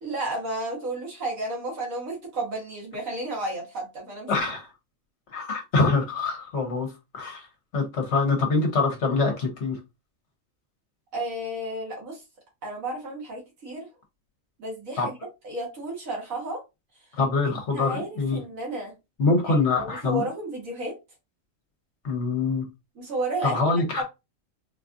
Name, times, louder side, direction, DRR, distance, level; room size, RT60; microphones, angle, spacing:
voice 1, 0.0-4.4 11.1-12.2 12.6-13.9 14.6-15.2 15.4-16.6 17.7-18.9 19.5-21.0 23.0-24.0, right 2 dB, 80° right, 1.9 m, -32 dB
voice 2, 4.3-4.7 5.3-6.9 7.1-7.5 7.7-9.8 15.0-15.1 17.2-18.4 19.2-20.2 22.0-22.6 23.4-24.0, left 3 dB, 60° left, 1.2 m, -24 dB
3.9 x 2.4 x 2.5 m
omnidirectional pair, 1.4 m